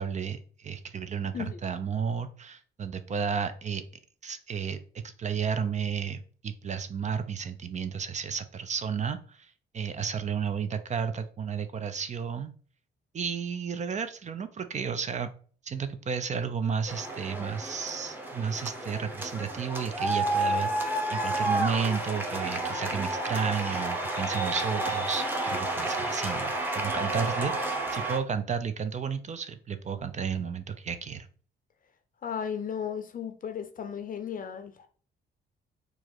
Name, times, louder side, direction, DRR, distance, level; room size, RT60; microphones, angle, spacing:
voice 1, 0.0-3.8 4.2-12.5 13.1-15.3 15.6-31.3, right 6 dB, 35° right, 0.4 m, -32 dB
sound 1, 16.9-28.2, right 2 dB, 10° right, 0.8 m, -31 dB
voice 2, 32.2-34.9, left 7 dB, 45° left, 0.6 m, -35 dB
4.6 x 2.0 x 4.3 m
cardioid pair, 90°, 20 cm